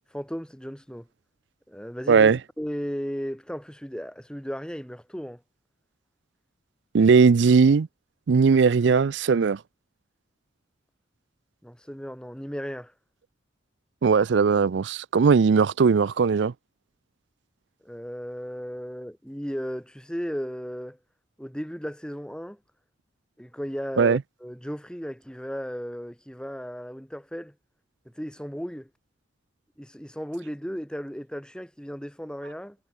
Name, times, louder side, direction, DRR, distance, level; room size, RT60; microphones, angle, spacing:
voice 1, 0.1-1.1 1.7-5.4 11.6-12.9 17.8-21.0 21.4-22.6 23.4-27.5 28.0-28.9 29.8-32.8, equal, 5° left, 6.8 m, -35 dB
voice 2, 2.1-2.4 6.9-7.9 8.3-9.6 14.0-16.5 24.0-24.2, right 5 dB, 70° right, 0.4 m, -19 dB
head